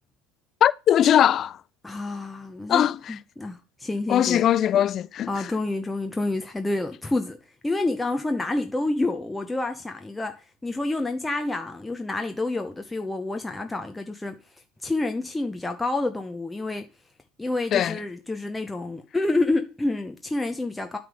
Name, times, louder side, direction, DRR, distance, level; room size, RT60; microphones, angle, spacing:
voice 1, 0.6-1.6 2.7-3.1 4.1-5.5 17.7-18.0, left 10 dB, 40° left, 0.4 m, -21 dB
voice 2, 1.8-4.4 5.3-7.4 7.6-14.4 14.8-16.8 17.4-21.0, left 2 dB, 10° left, 0.8 m, -28 dB
8.6 x 3.5 x 5.2 m
hypercardioid pair, 85°, 0 cm